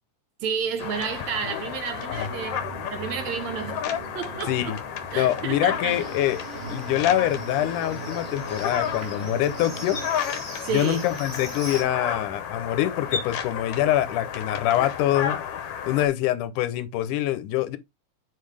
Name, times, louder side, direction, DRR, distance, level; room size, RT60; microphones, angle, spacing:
voice 1, 0.4-4.8 5.1-6.1 10.6-11.1, right 7 dB, 70° right, 2.0 m, -31 dB
sound 1, 0.8-16.1, left 8 dB, 65° left, 1.6 m, -33 dB
sound 2, 2.3-10.1, right 10 dB, 85° right, 2.2 m, -41 dB
voice 2, 4.5-4.8 5.1-10.0 10.7-15.4 15.8-17.8, left 13 dB, 85° left, 2.3 m, -25 dB
Livestock farm animals working animals, 5.9-11.8, right 1 dB, 25° right, 2.4 m, -42 dB
8.6 x 4.0 x 3.4 m
omnidirectional pair, 3.6 m